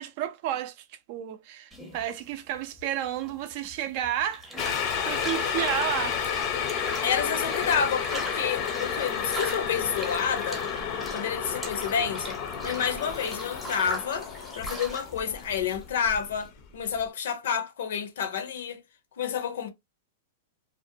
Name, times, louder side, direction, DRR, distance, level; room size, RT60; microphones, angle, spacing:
voice 1, 0.0-4.5 5.1-6.2, right 11 dB, 45° right, 0.4 m, -31 dB
sound 1, 1.7-16.5, right 1 dB, 5° right, 0.7 m, -41 dB
sound 2, 4.6-16.6 17.0-17.1, left 7 dB, 40° left, 0.5 m, -31 dB
voice 2, 7.0-10.6 11.1-12.4 12.6-14.3 14.5-18.8 19.2-19.7, left 7 dB, 75° left, 0.7 m, -29 dB
2.5 x 2.1 x 2.6 m
supercardioid pair, 150°, 0 cm